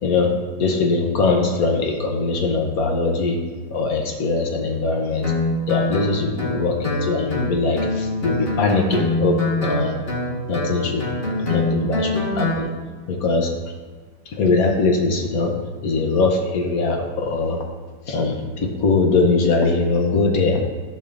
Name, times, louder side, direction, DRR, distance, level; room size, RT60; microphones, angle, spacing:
voice 1, 0.0-0.3 0.6-3.4 3.7-5.3 5.7-10.0 10.5-11.1 11.5-12.7 13.1-13.5 14.3-15.5 15.8-17.6 18.1-20.7, left 3 dB, 60° left, 2 dB, 1.1 m, -21 dB
Guitar, 5.2-12.6, left 2 dB, 30° left, 1.6 m, -24 dB
12.5 x 5.4 x 2.5 m, 1.4 s
omnidirectional pair, 2.1 m